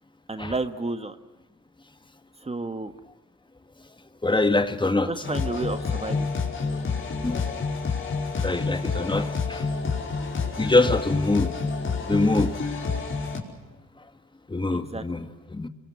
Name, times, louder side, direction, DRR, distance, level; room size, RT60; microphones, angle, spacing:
voice 1, 0.3-1.2 2.4-2.9 5.1-6.3 14.7-15.0, right 3 dB, 20° right, 10 dB, 1.5 m, -31 dB
voice 2, 4.2-5.1 7.2-7.4 8.4-9.7 10.6-11.6 12.1-12.5 14.5-15.7, left 2 dB, 15° left, 9 dB, 1.7 m, -24 dB
sound 1, 5.2-13.4, left 4 dB, 40° left, 5.2 m, -28 dB
26.5 x 23.0 x 7.5 m, 1.1 s
cardioid pair, 90°, 30 cm